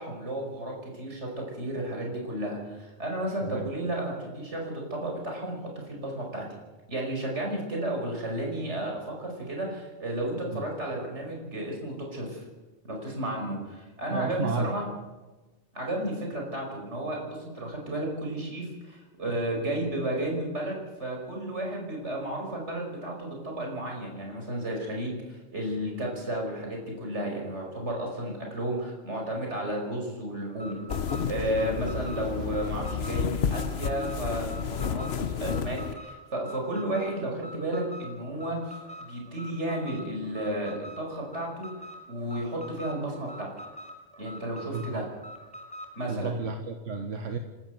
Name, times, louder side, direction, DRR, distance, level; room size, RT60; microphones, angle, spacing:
voice 1, 0.0-5.6 5.8-6.5 6.9-12.4 12.8-14.9 15.7-30.8 31.3-41.7 42.1-43.5 44.2-45.1 46.0-46.3, right 1 dB, 70° right, 0 dB, 5.8 m, -33 dB
voice 2, 3.4-3.7 10.5-10.6 14.1-14.7 44.6-45.0 46.1-47.4, right 4 dB, 85° right, 5 dB, 1.8 m, -32 dB
Alarm, 30.5-46.0, equal, 5° left, 4.0 m, -45 dB
sound 1, 30.9-35.9, left 7 dB, 60° left, 1.1 m, -31 dB
29.5 x 13.0 x 7.9 m, 1.2 s
omnidirectional pair, 1.2 m